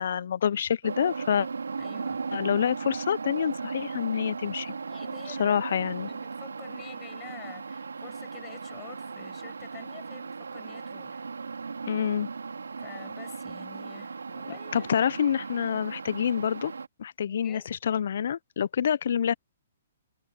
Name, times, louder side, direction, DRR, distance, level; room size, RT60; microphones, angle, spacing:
voice 1, 0.0-1.5 2.3-4.7 5.3-6.1 11.9-12.3 14.7-16.7 17.0-19.3, left 8 dB, 60° left, 0.6 m, -27 dB
sound 1, 0.8-16.9, right 5 dB, 80° right, 2.8 m, -37 dB
voice 2, 1.8-2.3 4.7-11.3 12.8-15.1 17.3-17.8, left 15 dB, 25° left, 6.7 m, -49 dB
figure-of-eight pair, 125°, 0 cm